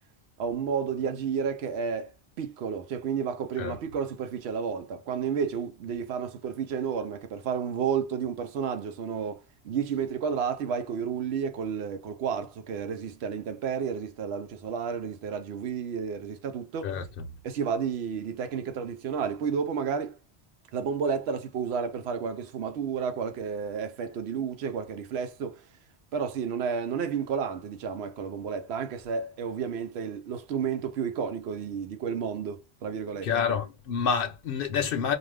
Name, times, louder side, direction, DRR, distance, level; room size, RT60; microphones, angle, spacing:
voice 1, 0.4-2.1 2.4-16.9 17.4-20.2 20.7-25.6 26.1-33.3, right 6 dB, 80° right, 0.9 m, -31 dB
voice 2, 16.8-17.3 33.2-35.1, left 6 dB, 60° left, 0.8 m, -28 dB
2.5 x 2.3 x 3.2 m
omnidirectional pair, 1.1 m